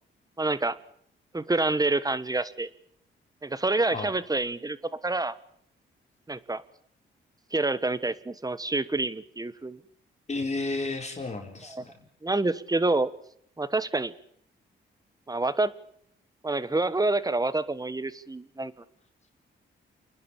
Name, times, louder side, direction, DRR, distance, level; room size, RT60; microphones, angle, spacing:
voice 1, 0.4-0.8 1.3-2.7 3.4-4.8 5.0-5.3 6.3-6.6 7.5-9.8 11.7-11.8 12.2-13.1 13.6-14.1 15.3-15.7 16.4-18.7, right 2 dB, 20° right, 16 dB, 1.3 m, -27 dB
voice 2, 10.3-12.0, left 3 dB, 35° left, 2 dB, 4.5 m, -32 dB
29.0 x 10.5 x 8.9 m, 0.68 s
cardioid pair, 65°, 20 cm